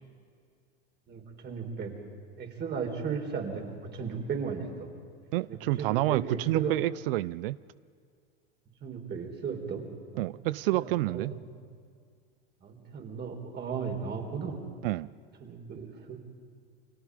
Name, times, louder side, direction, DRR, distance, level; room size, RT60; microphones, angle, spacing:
voice 1, 1.1-1.9 2.4-3.6 3.9-4.9 5.5-6.7 8.8-10.4 10.7-11.6 12.6-14.6 15.4-16.2, right 6 dB, 35° right, 2 dB, 4.4 m, -35 dB
voice 2, 5.3-7.6 10.2-11.3 14.8-15.1, right 18 dB, 60° right, 19 dB, 0.5 m, -29 dB
29.5 x 24.5 x 5.1 m, 2.1 s
hypercardioid pair, 90°, 31 cm